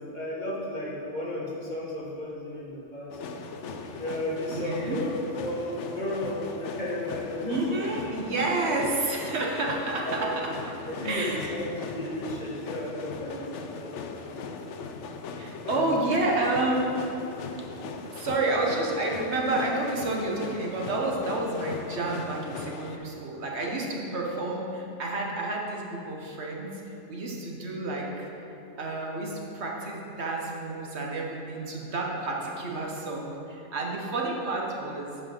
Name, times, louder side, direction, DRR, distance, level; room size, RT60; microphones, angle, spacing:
voice 1, 0.1-3.2 4.0-5.1 5.4-7.8 10.1-10.3 10.8-14.4 15.6-16.3 18.0-18.1, left 1 dB, 40° left, -5 dB, 1.6 m, -34 dB
sound 1, 3.1-23.0, left 4 dB, 85° left, 0.9 m, -39 dB
voice 2, 4.5-5.0 7.4-10.5 11.0-11.5 15.4-17.0 18.1-28.3 28.8-35.1, right 2 dB, 70° right, -2 dB, 1.4 m, -30 dB
8.8 x 4.9 x 6.4 m, 2.8 s
omnidirectional pair, 1.2 m